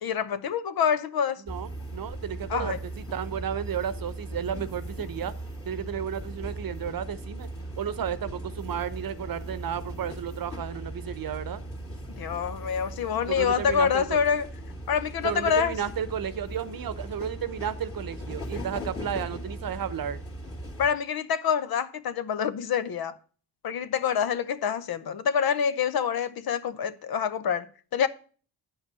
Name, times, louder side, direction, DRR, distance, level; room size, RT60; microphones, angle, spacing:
voice 1, 0.0-1.4 2.5-2.8 12.2-14.5 14.9-15.8 20.8-23.2 23.6-28.1, left 7 dB, 60° left, 0.8 m, -26 dB
sound 1, 1.5-20.9, right 1 dB, 35° left, 2.3 m, -38 dB
voice 2, 1.5-5.3 5.7-7.5 7.8-11.6 13.3-14.2 15.2-20.2, right 8 dB, 55° right, 0.9 m, -33 dB
8.5 x 5.6 x 6.7 m
supercardioid pair, 60°, 41 cm